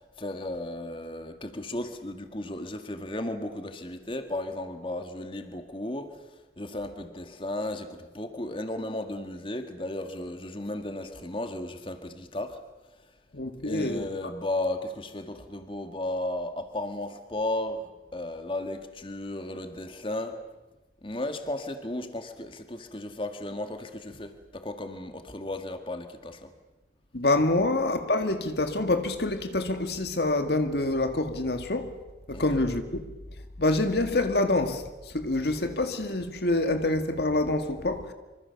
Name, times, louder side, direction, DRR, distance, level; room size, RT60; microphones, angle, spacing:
voice 1, 0.0-12.6 13.6-17.8 18.1-20.4 21.0-26.5 32.3-32.7, left 1 dB, 30° left, 1.9 m, -34 dB
voice 2, 13.3-14.1 27.1-31.9 32.3-33.0 33.6-38.1, left 2 dB, 65° left, 1.9 m, -26 dB
26.0 x 25.0 x 7.0 m
head